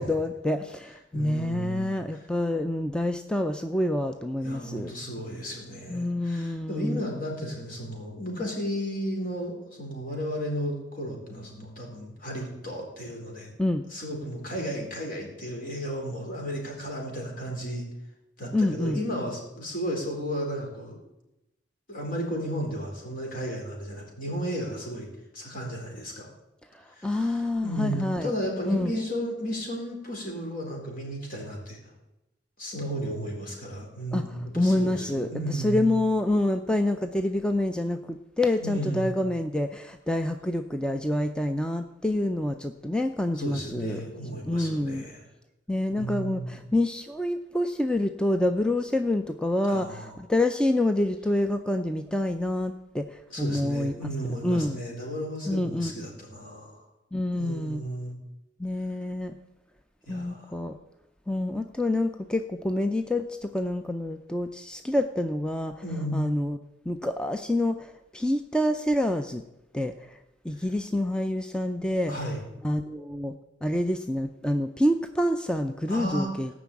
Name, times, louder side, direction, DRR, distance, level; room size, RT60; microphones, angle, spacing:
voice 1, 0.0-4.9 5.9-7.0 13.6-13.8 18.5-19.0 27.0-28.3 28.7-28.9 34.1-44.0 44.4-45.0 45.7-54.1 54.4-54.8 55.5-56.1 57.1-57.8 58.6-59.4 60.1-60.8 61.3-65.8 66.1-66.6 66.9-69.4 69.7-70.2 70.4-72.2 72.6-73.3 73.6-76.5, left 1 dB, 5° left, 7 dB, 0.5 m, -27 dB
voice 2, 1.1-2.2 4.4-13.5 13.9-17.9 18.4-21.0 21.9-25.1 25.3-26.3 26.9-31.8 32.6-35.9 38.6-39.1 43.3-45.2 45.9-46.6 49.7-50.1 53.3-56.8 57.3-58.2 60.1-60.5 65.8-66.2 70.6-70.7 72.1-72.4 75.9-76.3, equal, 50° left, 0 dB, 4.2 m, -34 dB
16.5 x 6.2 x 8.5 m, 0.95 s
head